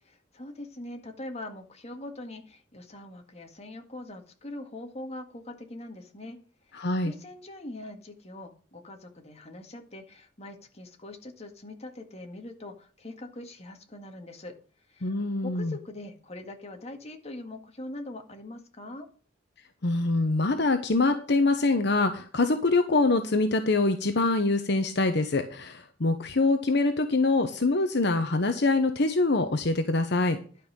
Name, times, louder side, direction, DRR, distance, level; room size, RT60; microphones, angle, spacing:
voice 1, 0.0-6.4 6.7-14.5 14.9-15.1 15.4-19.1, left 1 dB, 35° left, 4 dB, 1.9 m, -42 dB
voice 2, 6.7-7.1 15.0-15.8 19.8-30.4, left 3 dB, 65° left, 8 dB, 1.0 m, -24 dB
11.5 x 5.5 x 6.4 m, 0.40 s
head